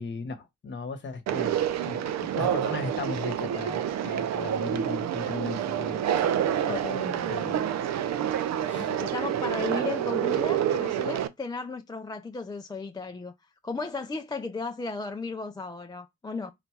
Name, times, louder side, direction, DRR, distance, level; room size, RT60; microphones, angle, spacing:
voice 1, 0.0-1.5 1.8-6.2 6.6-6.7 7.3-7.6 8.7-8.9, left 4 dB, 40° left, 1.1 m, -37 dB
Conversation, 1.3-11.3, right 10 dB, 60° right, 0.6 m, -28 dB
voice 2, 6.7-7.7 8.7-13.3 13.6-16.5, left 4 dB, 15° left, 0.4 m, -35 dB
4.0 x 2.2 x 4.5 m
cardioid pair, 90°, 30 cm